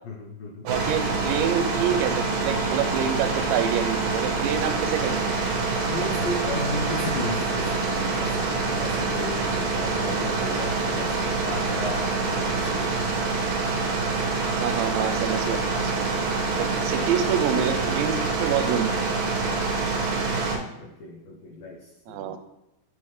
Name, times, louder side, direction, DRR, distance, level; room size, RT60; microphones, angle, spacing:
voice 1, 0.0-0.7 5.9-13.0 16.5-16.7 19.4-19.7 20.8-22.4, left 2 dB, 85° left, -2 dB, 2.0 m, -35 dB
sound 1, 0.7-20.6, right 3 dB, 65° right, 2.4 m, -26 dB
voice 2, 0.7-5.3 12.5-12.6 14.6-16.1 16.5-19.1 22.1-22.4, right 9 dB, 85° right, 8 dB, 2.8 m, -27 dB
9.9 x 3.6 x 3.2 m, 0.94 s
omnidirectional pair, 5.2 m